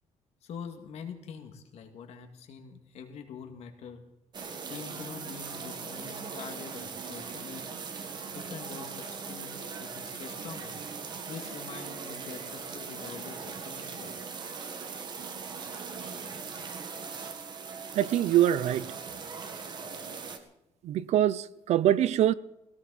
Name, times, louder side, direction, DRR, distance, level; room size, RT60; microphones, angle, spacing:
voice 1, 0.4-4.0 4.7-7.6 8.3-9.5 9.8-10.8 11.3-14.1, left 6 dB, 55° left, 2.2 m, -44 dB
sound 1, 4.3-20.4, right 5 dB, 35° right, 1.6 m, -40 dB
voice 2, 17.9-18.9 20.8-22.3, right 12 dB, 60° right, 0.6 m, -24 dB
17.5 x 17.5 x 4.2 m
cardioid pair, 165°, 13 cm